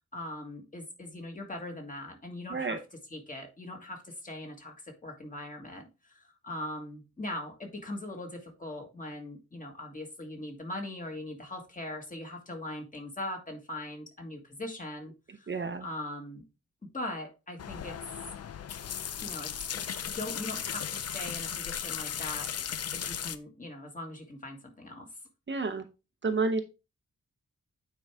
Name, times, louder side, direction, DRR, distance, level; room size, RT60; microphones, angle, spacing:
voice 1, 0.1-2.8 3.1-15.1 15.4-16.4 16.9-18.2 19.2-19.8 20.1-22.5 22.9-25.1, left 1 dB, 25° left, 2 dB, 1.7 m, -40 dB
voice 2, 15.5-15.9 25.5-25.9 26.2-26.6, right 3 dB, 40° right, 7 dB, 0.7 m, -30 dB
sound 1, 17.6-23.4, left 8 dB, 55° left, 0.5 m, -36 dB
8.9 x 4.6 x 3.5 m, 0.28 s
wide cardioid pair, 175°, 30 cm